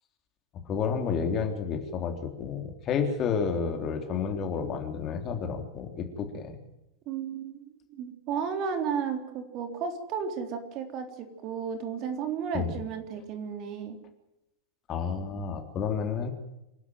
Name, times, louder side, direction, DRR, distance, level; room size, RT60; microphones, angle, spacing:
voice 1, 0.6-6.6 12.5-12.7 14.9-16.3, left 6 dB, 30° left, 5 dB, 3.5 m, -30 dB
voice 2, 7.1-14.0, right 6 dB, 40° right, 6 dB, 3.6 m, -33 dB
27.5 x 12.0 x 9.3 m, 0.92 s
figure-of-eight pair, 90°, 0 cm